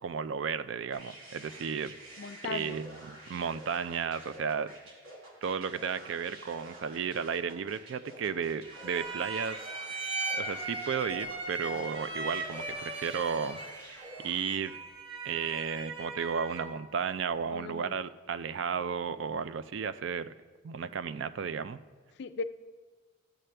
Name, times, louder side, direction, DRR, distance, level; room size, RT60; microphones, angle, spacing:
voice 1, 0.0-4.7 5.4-9.6 10.4-13.6 13.9-14.8 15.2-20.3 20.6-21.8, right 6 dB, 60° right, 14 dB, 0.4 m, -34 dB
sound 1, 0.9-14.7, right 1 dB, 85° right, 2.2 m, -49 dB
voice 2, 2.2-2.8 17.5-17.9 22.2-22.4, left 4 dB, 55° left, 11 dB, 0.4 m, -37 dB
sound 2, 8.7-16.8, right 3 dB, 25° right, 1.0 m, -38 dB
14.0 x 7.6 x 3.3 m, 1.4 s
head